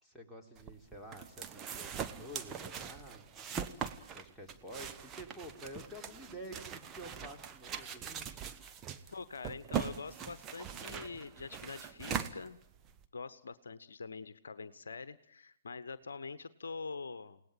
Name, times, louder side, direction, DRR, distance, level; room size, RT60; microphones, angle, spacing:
voice 1, 0.0-3.7 4.1-8.8, right 1 dB, ahead, 0 dB, 3.9 m, -50 dB
sound 1, 0.6-13.0, right 8 dB, 20° right, 1.4 m, -41 dB
voice 2, 9.1-12.6 13.1-17.4, left 4 dB, 65° left, 14 dB, 1.1 m, -45 dB
29.0 x 18.5 x 9.3 m, 0.75 s
figure-of-eight pair, 120°, 0 cm